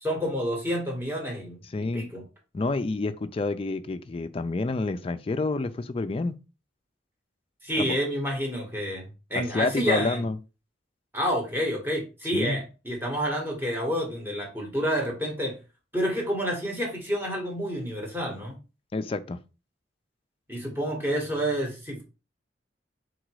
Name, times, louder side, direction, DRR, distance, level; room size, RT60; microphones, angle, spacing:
voice 1, 0.0-2.2 7.6-10.3 11.1-15.5 15.9-18.6 20.5-22.0, equal, 10° right, 1.3 m, -29 dB
voice 2, 1.7-2.0 2.5-6.4 7.7-8.0 9.4-10.4 12.3-12.6 18.9-19.4, left 3 dB, 30° left, 0.3 m, -28 dB
3.9 x 2.5 x 4.6 m
head